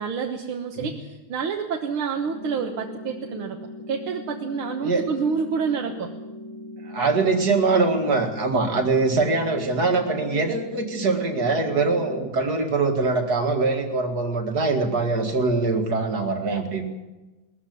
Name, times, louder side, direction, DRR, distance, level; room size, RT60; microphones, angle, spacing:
voice 1, 0.0-3.6 3.9-6.1, right 6 dB, 85° right, 2 dB, 2.1 m, -28 dB
sound 1, 2.3-12.3, left 1 dB, 75° left, 3.5 m, -39 dB
voice 2, 6.8-16.8, right 3 dB, 50° right, 5 dB, 2.6 m, -23 dB
19.5 x 14.5 x 9.5 m, 1.1 s
omnidirectional pair, 2.3 m